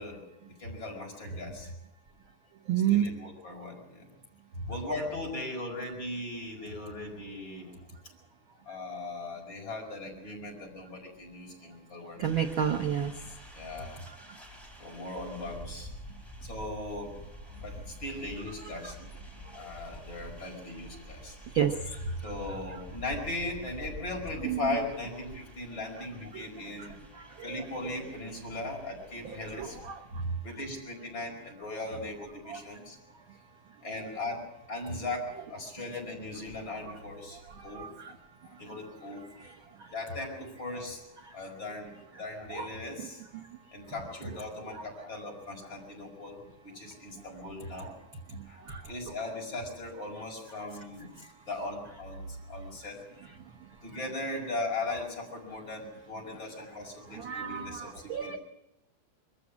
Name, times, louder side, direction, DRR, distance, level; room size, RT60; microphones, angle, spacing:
voice 1, 0.0-1.7 2.9-4.1 4.7-7.7 8.7-12.5 13.5-14.0 14.8-15.9 16.4-17.2 17.6-19.0 19.5-21.4 22.2-27.0 27.4-29.8 30.4-33.0 33.8-34.4 34.7-38.2 38.4-39.2 39.9-41.0 41.3-43.2 43.7-47.9 48.5-51.1 51.5-53.0 53.8-58.4, left 2 dB, 35° left, 0 dB, 5.7 m, -38 dB
voice 2, 2.7-3.1 12.2-13.1 14.1-14.4 18.8-18.9 19.5-19.7 21.5-22.2 24.4-24.6 26.3-26.5 26.8-26.9 27.1-27.6 29.2-30.3 32.5-32.6 37.3-38.2 39.4-39.5 39.8-39.9 41.2-41.3 42.5-42.7 43.0-43.1 43.3-43.4 44.7-44.8 48.3-48.9 51.2-51.3 57.1-58.4, right 8 dB, 65° right, 5 dB, 1.3 m, -32 dB
sound 1, 12.2-30.6, equal, ahead, 4.4 m, -48 dB
23.0 x 14.5 x 8.5 m, 0.93 s
omnidirectional pair, 3.5 m